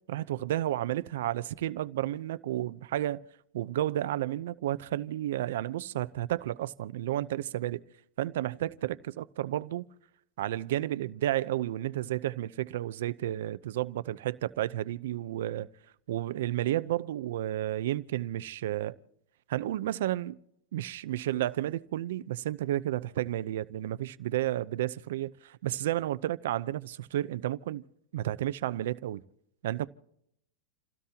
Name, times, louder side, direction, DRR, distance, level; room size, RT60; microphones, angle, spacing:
voice 1, 0.1-3.2 3.5-7.8 8.2-9.9 10.4-15.7 16.1-18.9 19.5-20.4 20.7-27.8 28.1-29.2 29.6-29.9, right 13 dB, 75° right, 0.7 m, -32 dB
29.0 x 17.0 x 2.9 m
supercardioid pair, 155°, 0 cm